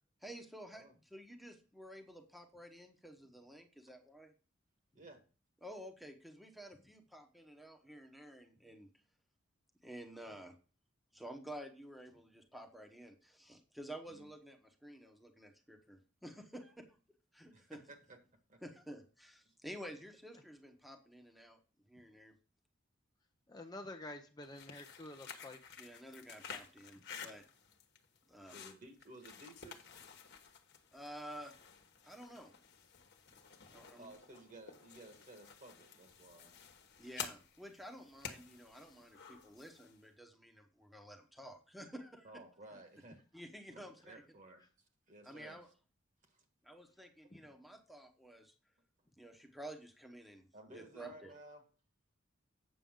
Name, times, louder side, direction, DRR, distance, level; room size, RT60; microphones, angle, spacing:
voice 1, 0.2-0.8 1.1-4.3 5.6-8.9 9.8-10.5 11.1-16.9 17.3-17.8 18.6-21.6 21.9-22.3 25.8-27.4 28.3-28.6 30.9-31.6 32.0-32.5 33.7-34.1 37.0-42.3 43.3-44.2 45.2-45.7 46.6-48.5 49.2-51.3, right 1 dB, ahead, 1.1 m, -51 dB
voice 2, 17.5-18.2 18.5-18.6 19.4-19.5 28.5-30.0 34.0-36.6 42.2-43.2 43.7-44.7 45.1-45.6 46.2-46.4 47.2-47.3 50.5-51.6, right 2 dB, 40° right, 1.6 m, -56 dB
voice 3, 23.5-25.6 47.3-47.5, left 2 dB, 20° left, 0.6 m, -49 dB
sound 1, 24.4-40.0, left 7 dB, 55° left, 1.3 m, -52 dB
8.6 x 6.8 x 3.7 m
head